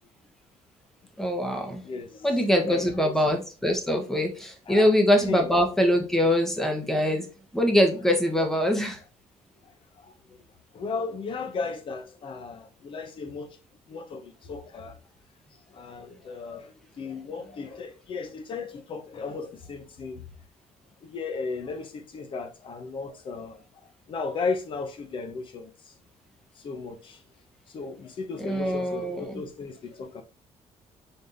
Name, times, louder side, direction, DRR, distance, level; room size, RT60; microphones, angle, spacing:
voice 1, 1.2-1.8 2.2-7.3 7.5-9.0 28.4-29.4, equal, 5° left, 0.9 m, -23 dB
voice 2, 1.8-2.4 2.6-3.1 4.7-4.9 5.3-5.5 8.4-8.5 10.0-10.1 10.7-13.6 13.9-14.9 15.7-20.2 21.0-23.6 24.1-25.9 26.6-27.2 27.7-30.2, left 4 dB, 45° left, 0.8 m, -35 dB
4.1 x 3.4 x 2.6 m
cardioid pair, 145°, 12 cm